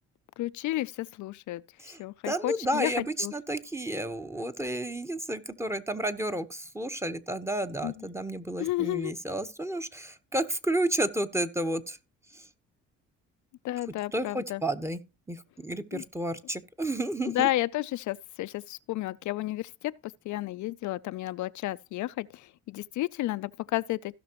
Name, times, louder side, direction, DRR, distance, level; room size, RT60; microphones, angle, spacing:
voice 1, 0.4-1.6 2.0-2.9 3.2-3.3 7.8-8.1 8.6-9.1 13.6-14.6 15.9-16.0 17.2-19.9 20.3-24.1, left 16 dB, 75° left, 0.5 m, -32 dB
voice 2, 2.3-12.0 14.1-15.0 15.3-17.5, right 1 dB, 10° right, 1.0 m, -31 dB
16.5 x 5.9 x 3.0 m
cardioid pair, 90°, 30 cm